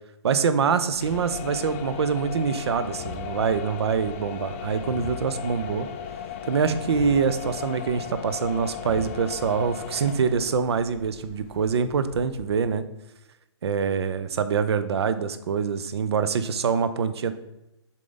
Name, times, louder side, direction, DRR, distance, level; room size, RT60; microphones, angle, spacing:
voice 1, 0.2-5.9 6.5-12.8 13.6-17.3, right 6 dB, 65° right, 11 dB, 0.6 m, -25 dB
sound 1, 0.9-12.8, left 8 dB, 25° left, 0.4 m, -36 dB
7.3 x 3.8 x 3.9 m, 0.94 s
hypercardioid pair, 150°, 15 cm